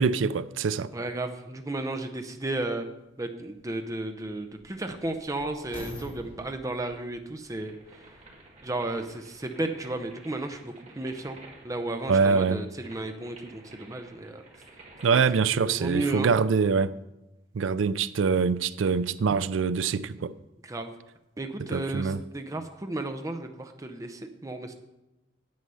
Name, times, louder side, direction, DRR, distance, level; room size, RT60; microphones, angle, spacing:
voice 1, 0.0-0.9 12.1-12.6 15.0-16.9 17.5-20.3 21.7-22.2, right 5 dB, 85° right, 0.4 m, -24 dB
voice 2, 0.9-2.9 3.2-8.0 8.6-11.4 11.6-14.4 15.1-16.3 20.6-20.9 21.4-24.7, right 2 dB, 15° right, 0.6 m, -34 dB
sound 1, 2.7-2.8 3.5-8.8 9.5-9.6, left 1 dB, 30° left, 4.0 m, -47 dB
sound 2, 7.6-15.3, right 2 dB, 35° right, 2.2 m, -52 dB
9.5 x 8.2 x 5.5 m
head